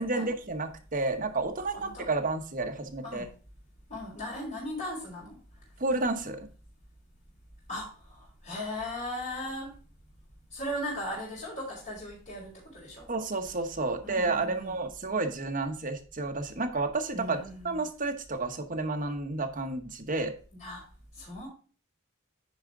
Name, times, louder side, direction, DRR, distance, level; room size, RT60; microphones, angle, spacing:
voice 1, 0.0-3.3 5.8-6.5 13.1-17.4 17.6-20.3, right 3 dB, 40° right, 5 dB, 1.1 m, -31 dB
voice 2, 1.7-2.1 3.0-3.3 3.9-5.4 7.7-9.7 10.5-13.1 14.0-14.7 17.1-17.8 20.5-20.8 21.1-21.5, left 1 dB, 40° left, -7 dB, 4.0 m, -38 dB
9.5 x 5.0 x 3.7 m, 0.38 s
head